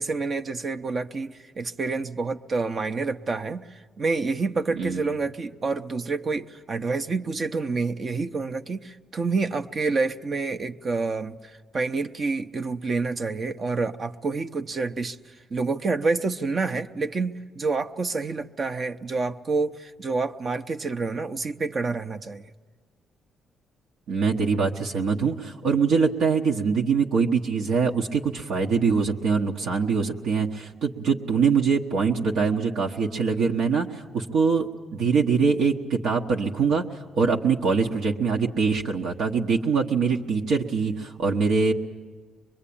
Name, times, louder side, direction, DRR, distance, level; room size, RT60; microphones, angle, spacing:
voice 1, 0.0-22.4, right 3 dB, 40° right, 8 dB, 0.7 m, -28 dB
voice 2, 4.7-5.1 24.1-36.8 37.1-41.7, right 5 dB, 75° right, 0 dB, 1.1 m, -23 dB
24.5 x 22.0 x 8.6 m, 1.4 s
cardioid pair, 90°, 0 cm